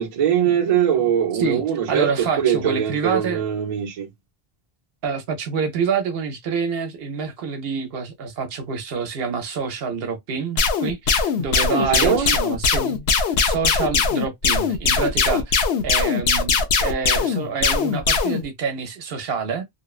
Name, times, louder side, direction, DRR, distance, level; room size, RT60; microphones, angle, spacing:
voice 1, 0.0-2.1 2.4-4.1 11.7-12.4, right 9 dB, 45° right, 0.5 m, -21 dB
voice 2, 1.3-3.4 5.0-19.6, right 5 dB, 70° right, 0.8 m, -27 dB
sound 1, 10.6-18.4, left 5 dB, 80° left, 0.8 m, -20 dB
2.7 x 2.1 x 2.3 m
omnidirectional pair, 1.1 m